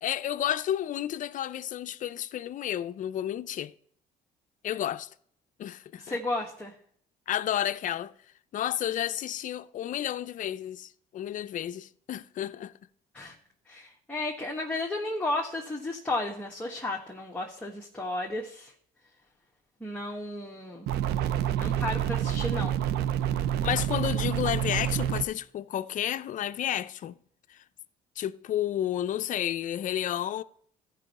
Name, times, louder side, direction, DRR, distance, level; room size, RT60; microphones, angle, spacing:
voice 1, 0.0-3.7 4.6-5.1 5.6-6.2 7.3-8.1 8.5-12.7 23.6-27.1 28.2-30.4, left 11 dB, 50° left, 0.5 m, -31 dB
voice 2, 6.0-6.8 13.1-13.3 13.7-18.7 19.8-20.9 21.5-22.8, left 2 dB, 10° left, 1.3 m, -33 dB
sound 1, 20.9-25.2, right 10 dB, 75° right, 0.5 m, -28 dB
14.0 x 5.4 x 4.2 m
cardioid pair, 110°, 17 cm